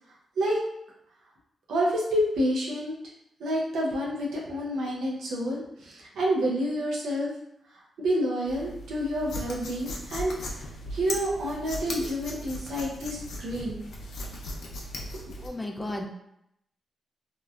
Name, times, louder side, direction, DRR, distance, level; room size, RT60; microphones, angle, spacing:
voice 1, 1.7-2.9 3.4-7.3 8.0-10.6 10.9-13.8 15.4-15.5, equal, 90° right, -3 dB, 0.6 m, -28 dB
sound 1, 8.5-15.5, left 1 dB, 80° left, 0.5 m, -38 dB
voice 2, 15.4-16.1, left 1 dB, 15° left, 3 dB, 0.4 m, -33 dB
2.9 x 2.1 x 2.3 m, 0.77 s
cardioid pair, 75°, 0 cm